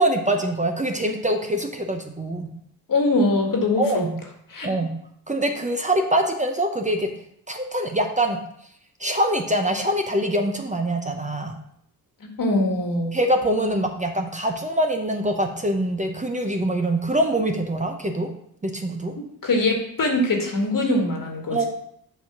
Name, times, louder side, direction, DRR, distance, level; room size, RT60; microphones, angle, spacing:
voice 1, 0.0-2.5 3.8-4.2 4.6-4.9 5.3-7.1 7.5-8.4 9.0-11.6 13.1-18.3 18.6-19.1 21.5-21.7, right 1 dB, 20° right, 3 dB, 0.9 m, -24 dB
voice 2, 2.9-4.0 4.5-4.7 12.2-13.1 19.2-21.6, left 2 dB, 55° left, 2 dB, 1.8 m, -22 dB
8.0 x 2.9 x 6.0 m, 0.69 s
cardioid pair, 65°, 40 cm